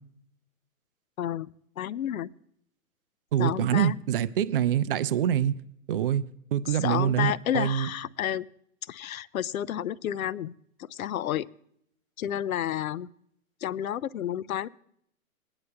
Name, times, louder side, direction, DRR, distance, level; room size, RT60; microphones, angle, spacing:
voice 1, 1.2-1.5 1.8-2.3 3.4-3.9 6.8-8.4 8.9-10.5 10.9-11.5 12.2-13.1 13.6-14.7, left 11 dB, 70° left, 0.6 m, -30 dB
voice 2, 3.3-5.5 5.9-6.2 6.5-7.9, right 10 dB, 40° right, 0.4 m, -25 dB
24.0 x 9.7 x 2.2 m
hypercardioid pair, 135°, 44 cm